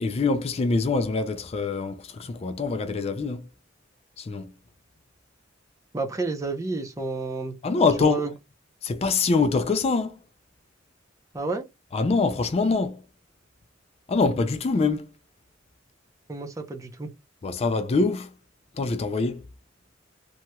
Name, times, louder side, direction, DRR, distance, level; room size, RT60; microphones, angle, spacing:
voice 1, 0.0-3.4 4.2-4.5 7.6-8.2 8.8-10.2 11.9-13.0 14.1-15.1 17.4-18.3 18.8-19.4, left 4 dB, 35° left, 0.4 m, -24 dB
voice 2, 5.9-7.5 8.0-8.3 11.3-11.7 16.3-17.1, right 3 dB, 15° right, 0.7 m, -30 dB
3.1 x 2.8 x 2.2 m
head